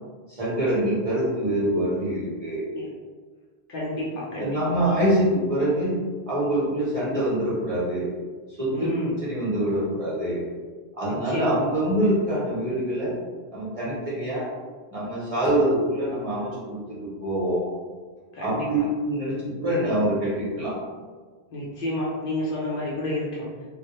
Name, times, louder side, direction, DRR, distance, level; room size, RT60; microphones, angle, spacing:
voice 1, 0.3-2.6 4.4-6.0 6.3-8.1 8.6-8.9 9.2-10.4 10.9-13.2 13.5-14.5 14.9-17.7 18.4-18.8 19.0-20.8, right 1 dB, 35° right, -9 dB, 0.8 m, -25 dB
voice 2, 3.7-4.8 8.7-9.1 11.0-11.6 18.3-18.9 21.5-23.5, left 1 dB, 60° left, -5 dB, 0.7 m, -30 dB
2.2 x 2.0 x 2.8 m, 1.5 s
omnidirectional pair, 1.1 m